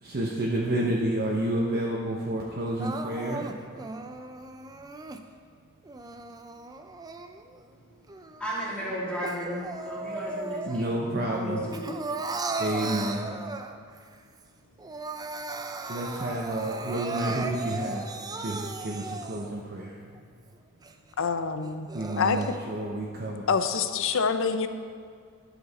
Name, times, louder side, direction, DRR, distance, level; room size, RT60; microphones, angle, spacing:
voice 1, 0.0-3.5 10.7-11.6 12.5-13.3 15.9-18.1 18.4-20.0 21.9-23.5, right 1 dB, 45° right, -2 dB, 0.9 m, -30 dB
Crying sobbing, 2.8-5.2 5.9-7.6 8.1-11.0 11.3-14.0 14.4-14.5 14.8-19.6 20.2-20.3 20.8-20.9 21.7-22.6, right 3 dB, 15° right, 0.4 m, -36 dB
voice 2, 8.4-10.6 11.1-11.9, equal, 5° left, -7 dB, 2.3 m, -34 dB
voice 3, 21.2-21.9 22.2-22.4 23.5-24.7, left 5 dB, 60° left, 9 dB, 0.5 m, -26 dB
11.5 x 7.1 x 4.1 m, 2.2 s
head